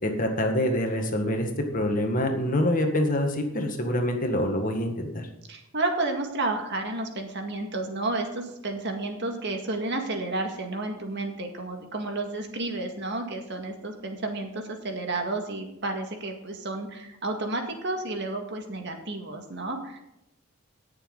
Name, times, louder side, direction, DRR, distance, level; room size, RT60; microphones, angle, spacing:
voice 1, 0.0-5.3, left 1 dB, 40° left, 4 dB, 1.8 m, -26 dB
voice 2, 5.5-20.0, right 2 dB, 55° right, 4 dB, 1.9 m, -31 dB
18.5 x 7.0 x 4.0 m, 0.86 s
head